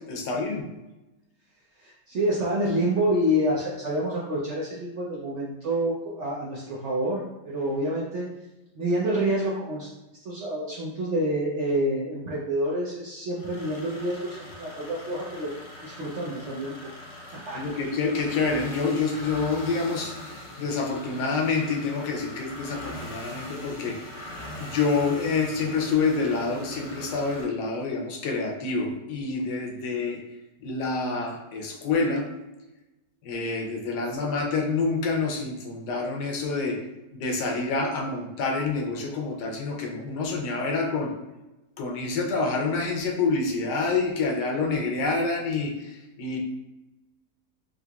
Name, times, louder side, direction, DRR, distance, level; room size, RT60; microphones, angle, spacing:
voice 1, 0.1-0.7 17.5-24.2 24.6-30.2 30.6-32.3 33.2-36.8 37.1-41.1 41.8-46.4, left 4 dB, 80° left, 1 dB, 1.2 m, -27 dB
voice 2, 1.8-8.3 8.8-9.9 10.2-15.5 15.8-16.8 17.3-17.6, right 1 dB, 65° right, -5 dB, 0.7 m, -28 dB
sound 1, 13.4-27.4, left 1 dB, 55° left, 1.0 m, -41 dB
3.7 x 3.0 x 2.3 m, 0.99 s
omnidirectional pair, 1.8 m